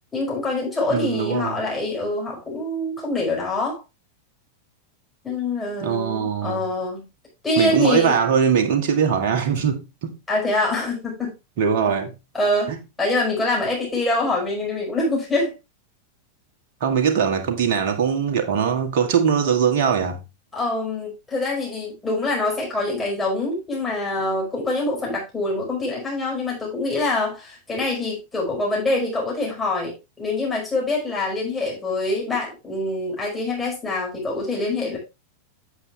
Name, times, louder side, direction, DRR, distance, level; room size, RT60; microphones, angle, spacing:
voice 1, 0.1-3.8 5.2-7.1 7.4-8.1 10.3-11.3 12.3-12.7 13.0-15.5 20.5-35.0, left 2 dB, 10° left, 5.1 m, -25 dB
voice 2, 0.9-1.6 5.8-6.6 7.6-10.1 11.6-12.1 12.7-12.8 16.8-20.2, right 7 dB, 50° right, 1.8 m, -21 dB
8.1 x 7.2 x 3.4 m
figure-of-eight pair, 90°, 0 cm